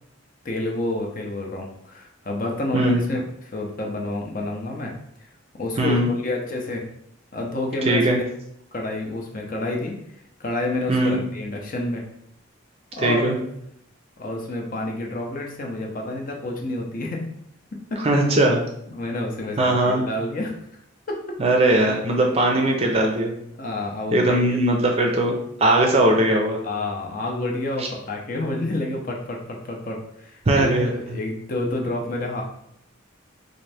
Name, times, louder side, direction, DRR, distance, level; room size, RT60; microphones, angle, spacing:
voice 1, 0.4-4.9 5.2-5.3 5.5-6.9 7.3-8.2 8.7-12.1 13.0-13.3 14.2-17.3 17.9-18.0 18.9-20.8 21.1-21.2 23.6-24.6 26.6-32.4, left 2 dB, 40° left, 0 dB, 0.6 m, -29 dB
voice 2, 5.8-6.1 7.9-8.2 10.9-11.2 13.0-13.4 18.0-18.6 19.6-20.0 21.4-23.3 24.1-25.3 25.6-26.6 27.8-27.9 30.5-31.2, right 1 dB, 30° right, 1 dB, 0.5 m, -19 dB
3.8 x 2.6 x 3.3 m, 0.75 s
head